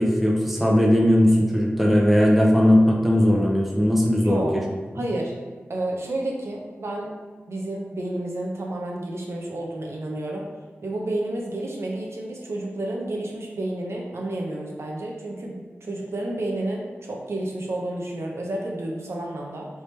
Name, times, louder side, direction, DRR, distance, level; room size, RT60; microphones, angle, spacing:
voice 1, 0.0-4.6, equal, 5° right, -1 dB, 0.7 m, -18 dB
voice 2, 4.2-4.6 4.9-5.3 5.7-7.1 7.5-10.5 10.8-19.7, right 1 dB, 70° right, -1 dB, 0.6 m, -30 dB
3.3 x 2.8 x 3.2 m, 1.4 s
cardioid pair, 50°, 5 cm